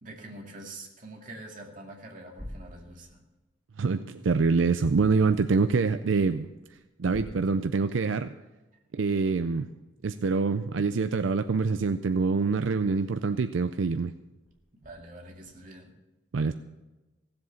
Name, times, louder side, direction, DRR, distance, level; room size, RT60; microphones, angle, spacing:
voice 1, 0.0-3.2 14.7-15.9, right 2 dB, 40° right, 0 dB, 2.2 m, -45 dB
sound 1, 2.2-3.4 3.9-5.5 6.0-7.6 8.0-8.1 8.7-8.8 9.5-15.7, equal, 10° right, 2.1 m, -48 dB
voice 2, 3.8-6.5 7.0-8.3 8.9-9.7 10.0-14.1 16.3-16.5, right 4 dB, 75° right, 10 dB, 0.5 m, -25 dB
16.0 x 7.9 x 7.0 m, 1.1 s
head